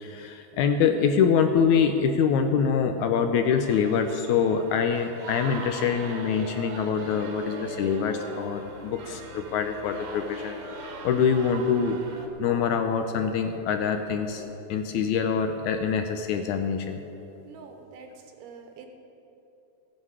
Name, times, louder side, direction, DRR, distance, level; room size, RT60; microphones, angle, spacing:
voice 1, 0.0-14.4 14.7-17.0, left 6 dB, 80° left, 6 dB, 1.8 m, -25 dB
sound 1, 3.6-12.3, right 5 dB, 65° right, 1.9 m, -42 dB
sound 2, 5.9-14.6, left 2 dB, 45° left, 3.3 m, -44 dB
voice 2, 17.5-18.9, right 5 dB, 85° right, 4 dB, 2.7 m, -46 dB
16.0 x 9.4 x 4.8 m, 3.0 s
omnidirectional pair, 3.8 m